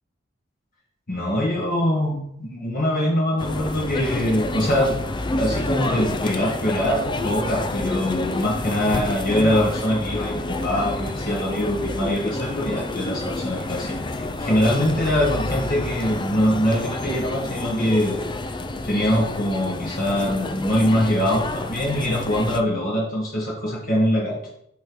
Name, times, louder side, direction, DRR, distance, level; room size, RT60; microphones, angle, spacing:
voice 1, 1.1-4.9 5.4-18.2 18.8-24.4, equal, 45° left, -4 dB, 1.5 m, -23 dB
sound 1, 3.4-22.6, left 2 dB, 25° left, 0.5 m, -29 dB
11.0 x 3.8 x 4.7 m, 0.75 s
head